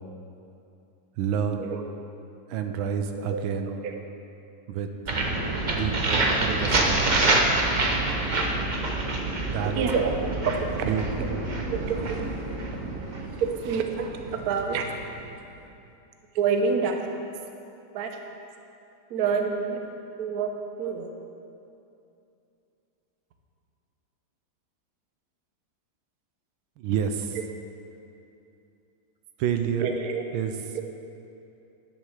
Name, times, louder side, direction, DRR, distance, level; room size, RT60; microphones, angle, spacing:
voice 1, 1.2-1.7 2.5-3.7 4.7-4.9 5.7-7.3 9.5-9.7 10.8-11.0 26.8-27.3 29.4-29.8 30.3-30.5, right 8 dB, 85° right, 7 dB, 1.5 m, -28 dB
voice 2, 3.1-4.0 6.2-6.6 7.3-7.4 9.3-9.4 9.6-11.3 11.7-12.6 13.3-15.2 16.3-17.3 17.9-18.2 19.1-19.8 20.2-20.5 20.8-21.1 27.3-27.4 29.8-30.3 30.7-30.8, right 5 dB, 60° right, 4 dB, 1.2 m, -29 dB
sound 1, 5.1-14.9, right 2 dB, 40° right, 0.6 m, -27 dB
10.5 x 7.4 x 6.5 m, 2.7 s
omnidirectional pair, 2.2 m